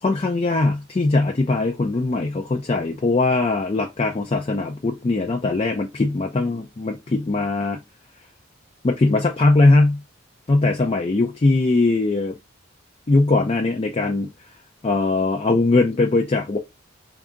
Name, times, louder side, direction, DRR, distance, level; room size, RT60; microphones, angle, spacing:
voice 1, 0.0-7.8 8.8-10.0 10.5-12.4 13.1-14.3 14.8-16.6, left 2 dB, 30° left, 0.4 m, -20 dB
3.6 x 2.3 x 3.6 m
head